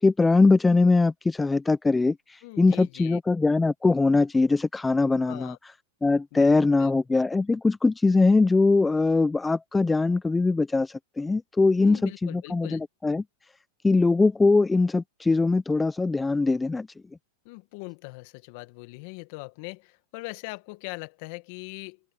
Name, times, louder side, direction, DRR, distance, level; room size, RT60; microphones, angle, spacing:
voice 1, 0.0-5.5 6.0-13.2 13.8-16.9, left 3 dB, 10° left, 0.6 m, -22 dB
voice 2, 2.4-3.2 5.3-5.6 6.3-6.5 6.8-6.9 11.8-12.8 17.4-22.0, left 25 dB, 60° left, 1.8 m, -41 dB
hypercardioid pair, 110°, 0 cm